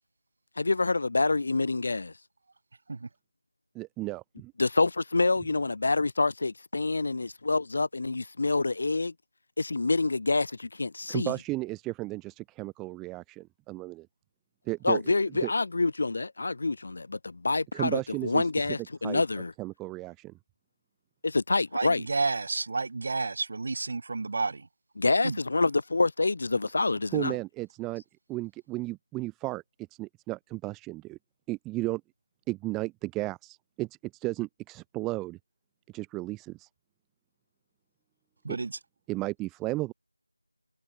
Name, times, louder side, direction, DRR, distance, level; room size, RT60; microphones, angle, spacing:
voice 1, 0.6-2.1 4.6-9.1 9.6-11.3 14.8-19.5 21.2-22.0 25.0-27.4, left 3 dB, 40° left, 2.2 m, -27 dB
voice 2, 3.7-4.5 11.1-14.1 14.7-15.1 15.4-15.5 17.7-18.5 19.0-19.2 19.6-20.3 27.1-28.0 28.3-29.6 29.9-31.2 31.5-32.0 32.5-35.4 35.9-36.7 38.5-38.6 39.1-39.9, right 20 dB, 5° right, 0.4 m, -34 dB
voice 3, 21.7-24.7 25.2-25.4 38.4-38.8, right 3 dB, 35° right, 2.0 m, -31 dB
figure-of-eight pair, 170°, 0 cm